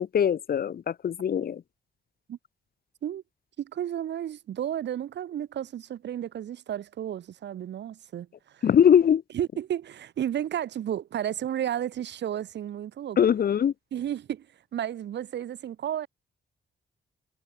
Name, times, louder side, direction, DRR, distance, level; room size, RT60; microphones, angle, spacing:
voice 1, 0.0-1.6 8.6-9.2 13.2-13.7, left 8 dB, 55° left, 4.4 m, -21 dB
voice 2, 3.6-8.7 9.3-13.2 13.9-14.5 14.7-16.1, right 10 dB, 75° right, 5.2 m, -32 dB
wide cardioid pair, 160°, 18 cm